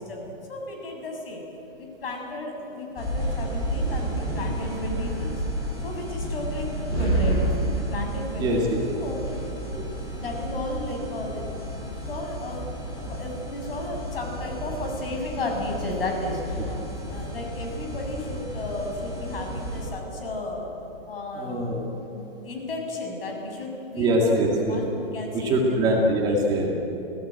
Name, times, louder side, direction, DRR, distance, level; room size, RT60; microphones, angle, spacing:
voice 1, 0.0-1.4 1.8-5.5 5.8-7.5 7.7-8.6 9.0-9.3 10.1-20.7 21.1-21.8 22.1-26.4, left 1 dB, 70° left, 2 dB, 7.0 m, -34 dB
sound 1, 3.0-19.9, right 1 dB, 15° left, 4.6 m, -31 dB
voice 2, 8.4-9.1 9.8-10.1 21.4-21.9 24.0-24.8 25.3-26.7, right 1 dB, 15° right, -1 dB, 2.1 m, -23 dB
28.0 x 16.5 x 9.0 m, 2.9 s
hypercardioid pair, 175°, 30 cm